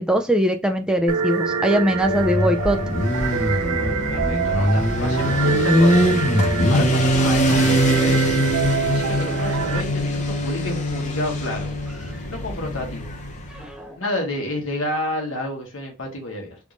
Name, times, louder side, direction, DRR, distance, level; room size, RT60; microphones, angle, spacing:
voice 1, 0.0-2.8 13.5-14.0, equal, 5° right, 0.3 m, -21 dB
sound 1, 1.1-9.8, right 5 dB, 85° right, 0.5 m, -26 dB
Motorcycle, 1.9-13.6, equal, 35° left, 0.6 m, -22 dB
voice 2, 3.8-6.2 6.7-8.2 8.9-11.7 12.3-13.1 14.0-16.6, left 1 dB, 70° left, 1.3 m, -30 dB
3.5 x 2.5 x 3.0 m
head